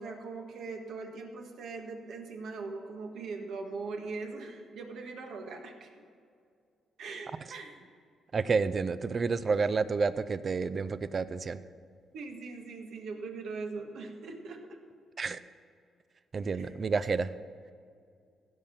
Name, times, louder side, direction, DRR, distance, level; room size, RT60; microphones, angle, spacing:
voice 1, 0.0-5.9 7.0-7.7 12.1-14.8 16.5-16.7, right 4 dB, 75° right, 3 dB, 1.6 m, -41 dB
voice 2, 8.3-11.6 15.2-15.4 16.3-17.3, right 4 dB, 40° right, 14 dB, 0.5 m, -29 dB
16.0 x 5.7 x 7.0 m, 2.3 s
cardioid pair, 105°, 0 cm